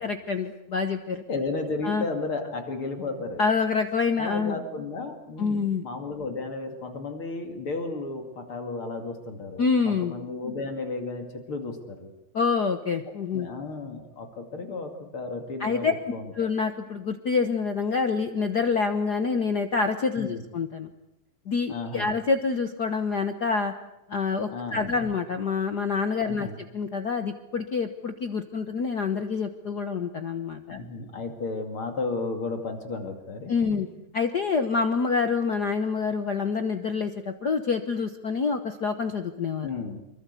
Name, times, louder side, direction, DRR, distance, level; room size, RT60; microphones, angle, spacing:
voice 1, 0.0-1.2 1.8-2.0 3.4-4.6 5.4-5.8 9.6-10.1 12.3-13.5 15.6-15.9 16.3-20.9 21.5-23.7 24.1-26.5 26.7-30.8 33.5-33.9 34.1-39.7, left 5 dB, 65° left, 7 dB, 0.9 m, -27 dB
voice 2, 1.3-3.4 4.2-12.1 13.3-16.5 20.2-20.4 21.7-22.1 24.5-25.1 26.2-26.6 30.7-33.8 39.6-40.0, left 3 dB, 45° left, 5 dB, 3.1 m, -33 dB
25.5 x 23.0 x 8.3 m, 0.87 s
omnidirectional pair, 3.4 m